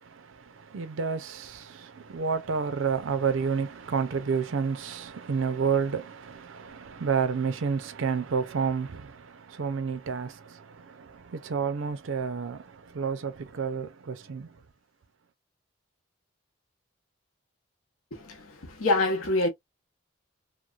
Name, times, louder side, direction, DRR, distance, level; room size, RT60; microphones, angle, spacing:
voice 1, 0.0-14.6, right 6 dB, 70° right, 0.5 m, -30 dB
voice 2, 18.1-19.5, left 2 dB, 85° left, 0.8 m, -26 dB
3.0 x 2.1 x 2.4 m
head